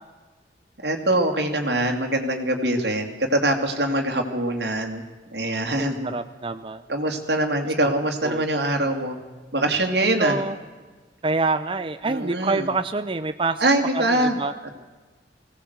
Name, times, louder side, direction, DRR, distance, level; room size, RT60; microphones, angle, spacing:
voice 1, 0.8-5.0 5.3-6.1 6.9-9.2 9.5-10.4 12.0-12.7 13.6-14.4 14.6-14.7, right 1 dB, 65° right, 3 dB, 2.6 m, -23 dB
voice 2, 5.8-6.8 8.2-8.4 10.2-10.6 11.2-13.6 13.9-14.5, right 3 dB, 30° right, 10 dB, 0.6 m, -26 dB
20.0 x 17.0 x 8.1 m, 1.3 s
head